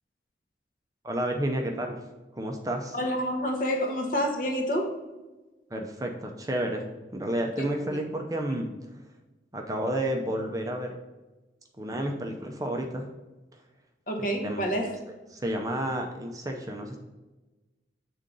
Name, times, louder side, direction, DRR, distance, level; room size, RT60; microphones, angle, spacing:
voice 1, 1.0-2.0 2.3-3.0 5.7-6.9 7.1-8.7 9.5-10.9 11.8-13.1 14.2-14.6 15.3-17.0, right 1 dB, 20° right, 3 dB, 0.5 m, -31 dB
voice 2, 2.9-4.9 7.6-7.7 7.9-8.0 14.1-14.9, equal, 45° left, 2 dB, 0.9 m, -28 dB
6.9 x 3.7 x 3.8 m, 1.1 s
head